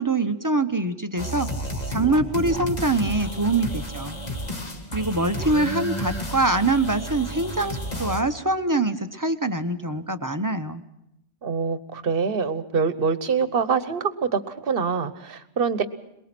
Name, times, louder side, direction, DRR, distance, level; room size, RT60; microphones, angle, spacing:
voice 1, 0.0-1.5 1.9-4.2 4.9-10.8, right 2 dB, 20° right, 9 dB, 0.7 m, -24 dB
sound 1, 1.2-8.2, left 1 dB, 40° left, 2.0 m, -31 dB
voice 2, 11.4-15.9, right 5 dB, 55° right, 12 dB, 1.2 m, -25 dB
23.0 x 21.5 x 6.0 m, 0.84 s
omnidirectional pair, 1.1 m